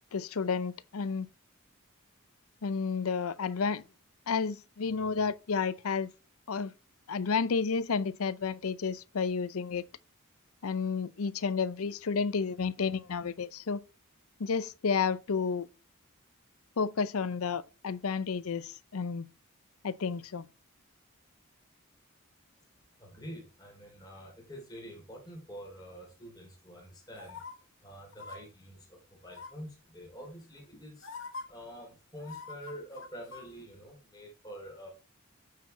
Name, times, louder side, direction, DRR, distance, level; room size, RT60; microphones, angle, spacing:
voice 1, 0.1-1.3 2.6-3.8 4.3-6.1 6.5-6.7 7.1-9.8 10.6-13.8 14.4-15.7 16.8-19.3 19.8-20.4, left 5 dB, 80° left, 0.6 m, -31 dB
voice 2, 23.0-27.4 27.8-31.1 31.5-34.9, equal, 20° left, 3.1 m, -47 dB
sound 1, 27.2-27.5 28.1-28.4 29.3-29.7 30.6-30.7 31.0-31.4 32.2-33.5 33.8-33.9, left 4 dB, 65° left, 1.8 m, -44 dB
9.3 x 4.8 x 4.3 m
head